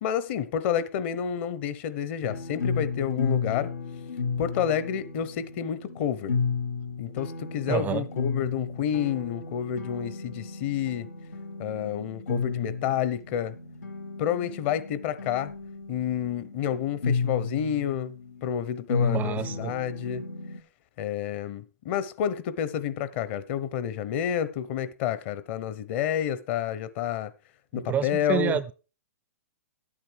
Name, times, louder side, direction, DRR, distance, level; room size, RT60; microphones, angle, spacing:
voice 1, 0.0-3.7 4.4-6.4 7.0-11.1 11.6-13.5 14.2-15.5 15.9-18.1 18.4-20.3 21.0-27.3 27.7-28.6, left 9 dB, 45° left, 1.0 m, -29 dB
sound 1, 2.2-20.6, left 5 dB, 90° left, 1.2 m, -33 dB
voice 2, 7.7-8.0 19.0-19.7 27.7-28.7, right 10 dB, 20° right, 0.4 m, -29 dB
10.5 x 8.8 x 4.7 m
hypercardioid pair, 130°, 8 cm